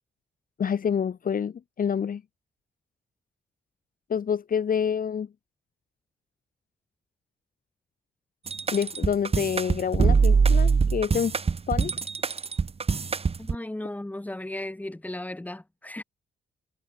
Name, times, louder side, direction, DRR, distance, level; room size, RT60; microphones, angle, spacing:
voice 1, 0.6-2.2 4.1-5.3 8.7-11.4 11.7-11.9, left 7 dB, 45° left, 2.0 m, -27 dB
sound 1, 8.5-13.6, right 5 dB, 30° right, 2.2 m, -23 dB
voice 2, 13.4-16.0, left 1 dB, 10° left, 6.5 m, -35 dB
wide cardioid pair, 160°, 20 cm